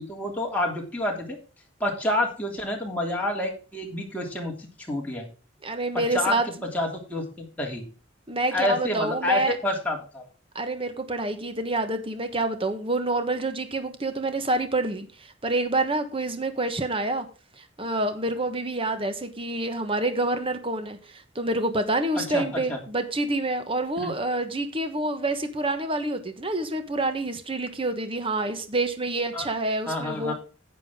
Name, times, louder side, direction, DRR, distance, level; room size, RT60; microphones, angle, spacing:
voice 1, 0.0-1.4 1.8-5.3 5.9-7.8 8.5-10.2 22.1-22.8 24.0-24.1 29.3-29.5 29.9-30.3, left 1 dB, 5° left, 3.0 m, -29 dB
voice 2, 5.6-6.4 8.3-9.6 10.5-17.2 17.6-30.3, right 2 dB, 25° right, 1.2 m, -27 dB
10.5 x 9.2 x 3.7 m
head